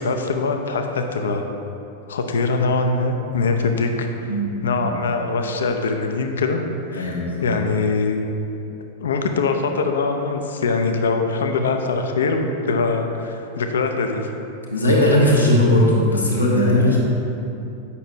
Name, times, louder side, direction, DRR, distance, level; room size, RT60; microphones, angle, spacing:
voice 1, 0.0-1.4 2.1-4.1 4.6-6.6 6.9-8.3 9.0-14.4, left 3 dB, 65° left, 5 dB, 0.5 m, -22 dB
voice 2, 4.3-4.9 6.9-7.5 14.7-17.0, left 1 dB, 80° left, -4 dB, 1.1 m, -18 dB
8.2 x 5.8 x 2.7 m, 2.8 s
figure-of-eight pair, 90°, 0 cm